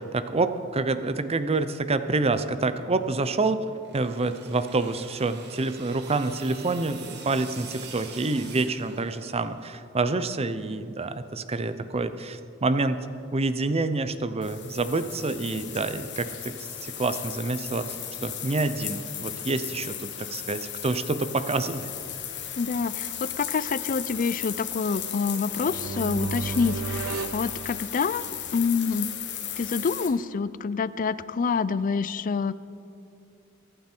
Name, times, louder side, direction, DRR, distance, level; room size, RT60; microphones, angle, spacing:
voice 1, 0.0-13.0 13.3-21.9, right 3 dB, 30° right, 11 dB, 0.6 m, -27 dB
sound 1, 3.7-9.6, right 5 dB, 55° right, 1.5 m, -45 dB
sound 2, 14.4-30.1, left 10 dB, 55° left, 1.4 m, -36 dB
voice 2, 22.6-28.2 28.5-29.1 29.6-32.5, left 5 dB, 40° left, 16 dB, 0.4 m, -27 dB
sound 3, 25.3-28.4, right 4 dB, 75° right, 0.6 m, -34 dB
22.5 x 9.1 x 4.5 m, 2.6 s
head